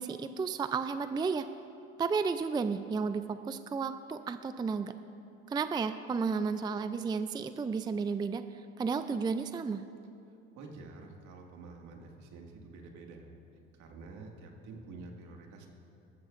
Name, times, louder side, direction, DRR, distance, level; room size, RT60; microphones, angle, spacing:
voice 1, 0.0-1.5 2.0-4.9 5.5-8.4 8.8-9.8, right 5 dB, 15° right, 11 dB, 0.4 m, -32 dB
voice 2, 10.6-13.3 13.7-15.7, right 3 dB, 65° right, 1 dB, 2.0 m, -48 dB
19.5 x 13.5 x 2.5 m, 2.6 s
supercardioid pair, 85°, 31 cm